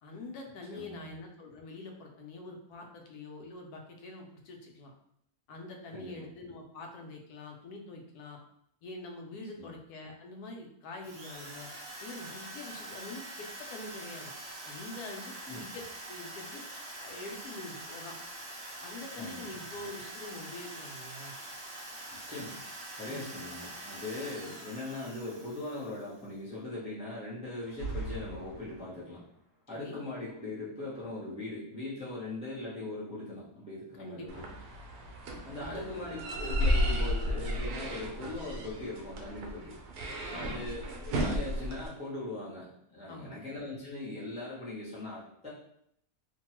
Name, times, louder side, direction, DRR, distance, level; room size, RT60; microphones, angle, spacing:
voice 1, 0.0-4.9 5.5-8.4 8.8-11.7 12.0-14.3 14.6-16.6 17.0-18.2 18.8-21.3 23.1-23.4 29.7-30.0 34.0-34.4 35.7-35.9 40.3-40.6 43.1-43.4, left 2 dB, 80° left, 2 dB, 1.1 m, -45 dB
voice 2, 0.7-1.1 5.9-6.3 9.6-9.7 15.5-15.6 19.2-19.4 22.2-22.5 23.0-29.2 29.7-34.4 35.4-39.7 40.3-45.5, left 2 dB, 10° right, -9 dB, 0.4 m, -40 dB
Drill, 11.0-26.2, right 1 dB, 65° right, 1.0 m, -44 dB
sound 1, 27.5-29.2, right 2 dB, 50° left, 1.0 m, -40 dB
sound 2, 34.3-41.9, equal, 85° right, 1.1 m, -33 dB
2.9 x 2.2 x 2.9 m, 0.72 s
omnidirectional pair, 1.6 m